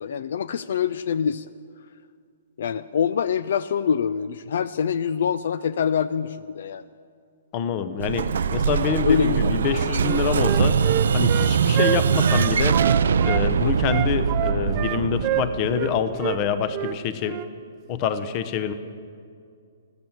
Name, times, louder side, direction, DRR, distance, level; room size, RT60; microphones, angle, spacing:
voice 1, 0.0-1.5 2.6-6.8 9.0-9.5, left 7 dB, 65° left, 15 dB, 0.4 m, -25 dB
voice 2, 7.5-10.8 11.1-12.8 13.2-17.4 17.9-18.7, left 7 dB, 30° left, 12 dB, 0.8 m, -26 dB
Explosion, 8.0-16.7, right 6 dB, 75° right, 0.5 m, -22 dB
Wind instrument woodwind instrument, 10.0-13.4 13.9-16.4 16.7-17.0 17.2-17.5, right 14 dB, 25° right, 0.5 m, -28 dB
14.0 x 14.0 x 7.2 m, 2.3 s
hypercardioid pair, 160°, 0 cm